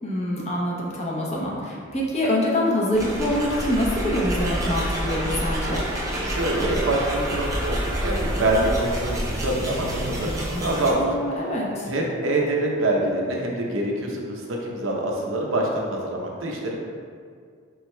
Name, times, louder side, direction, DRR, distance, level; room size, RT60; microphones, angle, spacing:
voice 1, 0.0-5.8 11.0-11.9, left 1 dB, 35° left, -4 dB, 0.8 m, -25 dB
sound 1, 2.9-10.9, equal, 15° right, 0.5 m, -28 dB
voice 2, 6.2-10.9 11.9-16.8, right 1 dB, 80° right, -1 dB, 0.7 m, -25 dB
5.0 x 4.6 x 2.2 m, 2.2 s
head